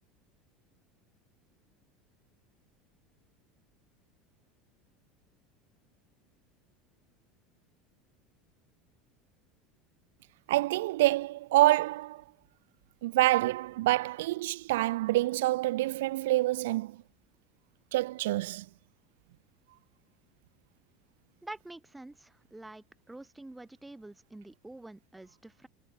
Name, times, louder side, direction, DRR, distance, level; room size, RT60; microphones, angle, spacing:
voice 1, 10.5-12.2 13.0-17.0 17.9-18.7, right 17 dB, 65° right, 1.0 m, -27 dB
voice 2, 21.4-25.7, right 2 dB, 10° right, 3.9 m, -47 dB
figure-of-eight pair, 70°, 0 cm